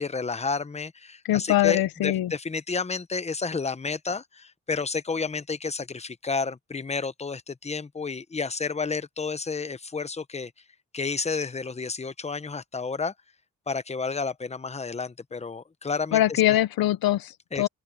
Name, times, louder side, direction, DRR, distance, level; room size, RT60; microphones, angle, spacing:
voice 1, 0.0-10.5 10.9-13.1 13.7-16.4 17.5-17.7, left 4 dB, 20° left, 0.8 m, -31 dB
voice 2, 1.2-2.3 16.1-17.7, left 14 dB, 85° left, 0.6 m, -23 dB
open air
wide cardioid pair, 125°, 35 cm